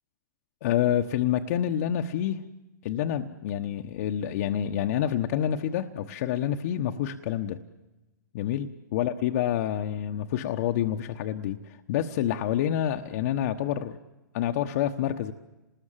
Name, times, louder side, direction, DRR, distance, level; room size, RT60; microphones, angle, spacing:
voice 1, 0.6-2.4 2.8-7.6 8.3-14.0 14.3-15.3, left 10 dB, 50° left, 5 dB, 1.2 m, -28 dB
27.5 x 20.0 x 7.5 m, 1.1 s
hypercardioid pair, 130°, 11 cm